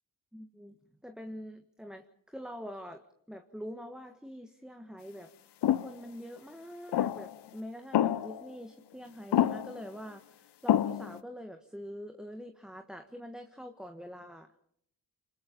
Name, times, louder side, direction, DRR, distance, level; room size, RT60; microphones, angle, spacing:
voice 1, 0.3-0.8 1.0-5.3 5.7-14.5, equal, ahead, 6 dB, 1.5 m, -45 dB
sound 1, 5.6-5.9 6.9-7.3 7.9-8.5 9.3-9.8 10.7-11.2, left 11 dB, 70° left, 0.9 m, -27 dB
26.0 x 21.0 x 5.3 m, 0.72 s
cardioid pair, 70°, 42 cm